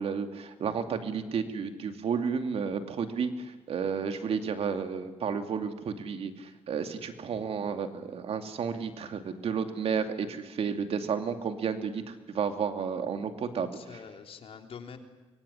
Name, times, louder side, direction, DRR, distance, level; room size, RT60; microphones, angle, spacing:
voice 1, 0.0-3.3 3.7-13.7, right 6 dB, 70° right, 7 dB, 2.5 m, -32 dB
voice 2, 13.4-15.0, left 6 dB, 60° left, 5 dB, 3.4 m, -46 dB
25.0 x 23.0 x 9.9 m, 1.1 s
cardioid pair, 95°, 11 cm